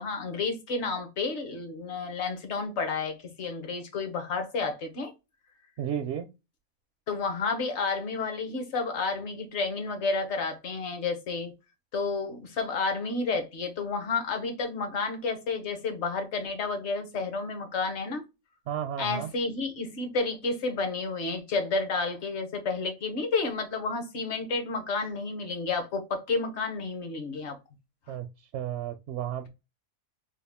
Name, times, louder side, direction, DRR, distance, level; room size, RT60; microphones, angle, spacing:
voice 1, 0.0-5.1 7.1-11.5 11.9-18.2 19.0-27.6, left 4 dB, 55° left, 1.2 m, -31 dB
voice 2, 5.8-6.3 18.7-19.3 28.1-28.3 28.5-29.5, right 10 dB, 65° right, 0.7 m, -32 dB
3.6 x 2.3 x 3.5 m
omnidirectional pair, 1.5 m